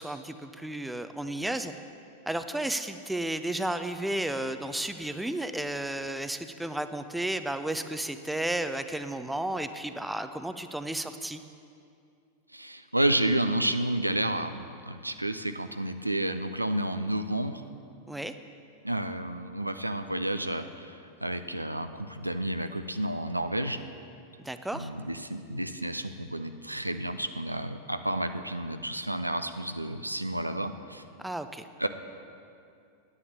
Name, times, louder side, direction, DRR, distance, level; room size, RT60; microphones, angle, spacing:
voice 1, 0.0-1.7 2.3-11.4 18.1-18.3 24.4-24.9 31.2-31.7, right 1 dB, 5° right, 9 dB, 0.6 m, -33 dB
voice 2, 12.5-17.6 18.8-23.8 24.7-31.0 31.8-31.9, right 1 dB, 85° right, 9 dB, 0.5 m, -31 dB
9.9 x 9.5 x 7.3 m, 2.4 s
figure-of-eight pair, 90°, 0 cm